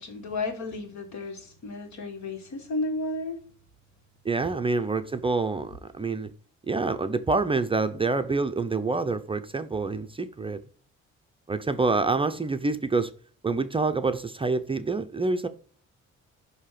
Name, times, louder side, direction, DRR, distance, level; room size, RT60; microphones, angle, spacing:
voice 1, 0.0-3.4 4.4-4.5, left 2 dB, 70° left, 1.7 m, -33 dB
voice 2, 4.2-6.3 6.7-10.6 11.5-13.1 13.4-15.5, right 3 dB, 20° right, 0.5 m, -27 dB
6.4 x 2.8 x 5.6 m
cardioid pair, 90°, 30 cm